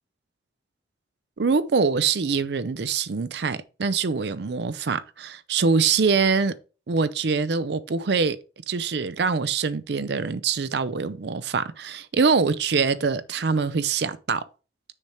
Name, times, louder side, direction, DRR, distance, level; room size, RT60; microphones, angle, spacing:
voice 1, 1.4-6.5 6.9-8.4 8.7-14.4, right 5 dB, 65° right, 0.5 m, -24 dB
6.5 x 4.3 x 4.8 m
head